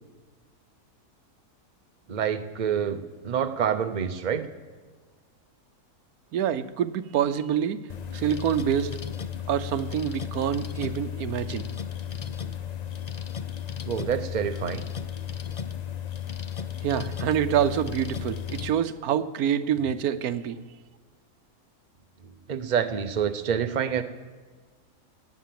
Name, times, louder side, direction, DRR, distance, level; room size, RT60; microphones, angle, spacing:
voice 1, 2.1-3.0 3.2-4.5 13.9-14.8 22.5-24.0, right 8 dB, 40° right, 9 dB, 0.7 m, -27 dB
voice 2, 6.3-7.8 8.1-8.9 9.5-11.7 16.8-20.6, right 9 dB, 75° right, 13 dB, 1.2 m, -26 dB
sound 1, 7.9-18.7, left 9 dB, 60° left, 0.4 m, -34 dB
17.0 x 10.0 x 7.6 m, 1.5 s
omnidirectional pair, 1.6 m